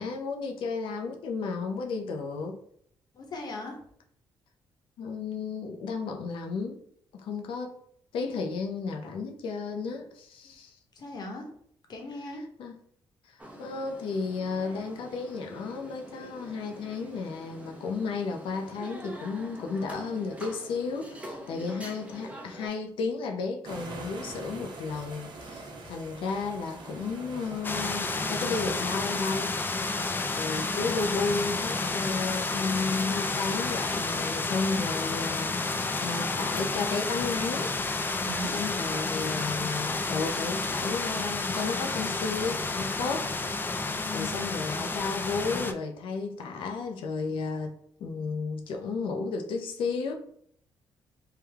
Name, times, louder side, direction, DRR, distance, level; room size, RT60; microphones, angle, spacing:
voice 1, 0.0-2.6 5.0-6.8 7.1-7.8 8.1-10.7 12.6-12.7 13.6-29.5 30.3-37.7 38.5-43.3 43.6-50.1, left 4 dB, 75° left, 0.6 m, -33 dB
voice 2, 3.1-3.8 11.0-11.5 11.9-12.4 38.2-38.5 43.9-44.3, left 1 dB, 50° left, 1.0 m, -38 dB
sound 1, 13.4-22.7, right 1 dB, 15° right, 0.7 m, -45 dB
sound 2, 23.6-29.2, right 2 dB, 60° right, 0.8 m, -43 dB
sound 3, 27.6-45.7, left 3 dB, 25° left, 0.3 m, -30 dB
3.4 x 2.2 x 3.4 m
cardioid pair, 80°, 9 cm